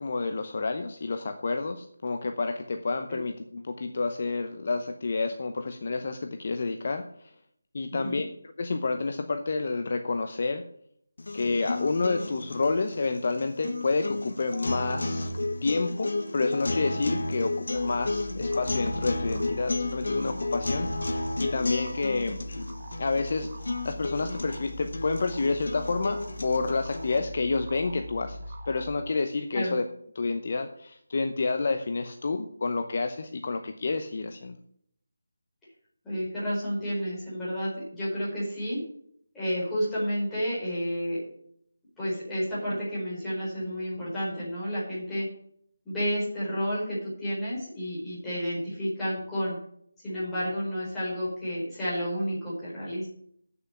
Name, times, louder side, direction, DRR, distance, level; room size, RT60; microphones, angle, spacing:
voice 1, 0.0-7.3 7.7-8.3 8.6-10.7 11.3-15.3 15.6-22.7 23.0-29.8 30.1-34.6, left 3 dB, 40° left, 7 dB, 0.8 m, -29 dB
sound 1, 11.2-27.2, left 2 dB, 70° left, 1.5 m, -32 dB
sound 2, 17.7-29.0, equal, 35° right, 1.7 m, -41 dB
voice 2, 36.0-38.8 39.3-41.2 42.0-45.3 45.8-49.6 50.0-53.1, equal, 5° left, -10 dB, 4.6 m, -31 dB
8.1 x 6.9 x 8.1 m, 0.67 s
figure-of-eight pair, 175°, 0 cm